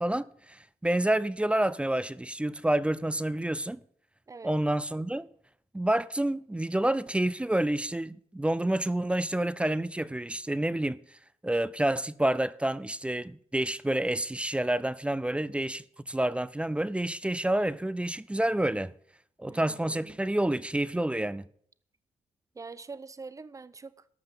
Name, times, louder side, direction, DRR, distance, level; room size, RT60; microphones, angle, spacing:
voice 1, 0.0-3.8 4.4-5.3 5.7-18.9 19.4-21.4, right 1 dB, 10° right, 0.5 m, -29 dB
voice 2, 19.5-20.2 22.5-24.1, right 4 dB, 25° right, 0.9 m, -44 dB
13.5 x 5.8 x 8.5 m
cardioid pair, 80°, 12 cm